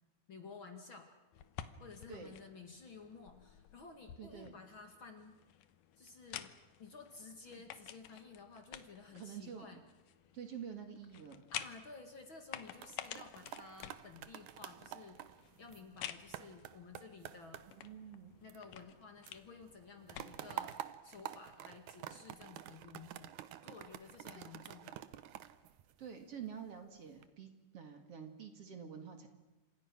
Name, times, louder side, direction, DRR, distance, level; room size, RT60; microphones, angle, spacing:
voice 1, 0.3-1.1 1.8-5.3 6.0-9.8 11.5-17.7 18.4-23.3 23.6-25.1, left 4 dB, 45° left, 5 dB, 2.4 m, -54 dB
sound 1, 1.3-20.8, left 11 dB, 85° left, 2.7 m, -52 dB
voice 2, 4.2-4.5 9.1-9.8 10.3-11.5 17.7-18.3 24.4-24.5 26.0-29.3, right 7 dB, 50° right, 6 dB, 2.9 m, -48 dB
sound 2, 12.5-19.0 19.3-26.5 27.0-27.3, right 12 dB, 75° right, 2.3 m, -49 dB
30.0 x 26.5 x 6.2 m, 1.1 s
omnidirectional pair, 3.7 m